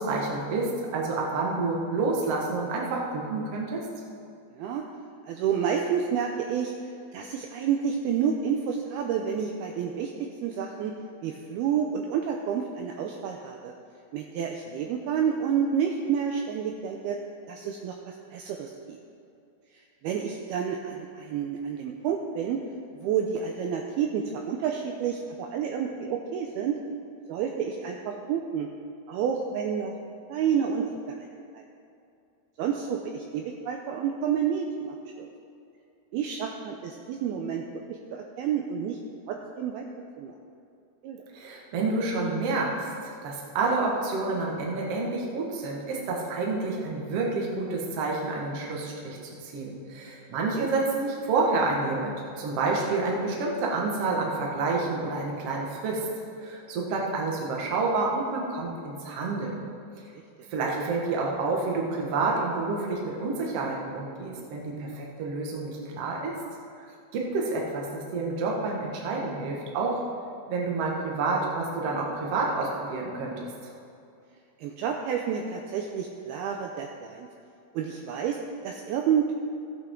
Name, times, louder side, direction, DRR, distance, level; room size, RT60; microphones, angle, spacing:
voice 1, 0.0-3.8 41.3-42.9 43.2-56.0 56.4-59.6 60.5-66.3 67.1-70.0 70.5-73.5, right 3 dB, 70° right, -2 dB, 1.4 m, -29 dB
voice 2, 5.3-6.7 7.1-10.1 10.4-10.9 11.2-13.7 14.1-17.2 17.5-19.0 20.0-22.6 22.9-26.8 27.3-28.7 29.1-29.9 30.3-31.3 31.5-31.6 32.6-35.3 36.1-39.0 39.3-39.9 40.2-40.3 41.0-41.2 50.5-50.7 74.6-77.3 77.7-78.4 78.6-79.3, right 7 dB, 90° right, 2 dB, 2.2 m, -29 dB
15.0 x 8.3 x 3.7 m, 2.6 s
omnidirectional pair, 5.1 m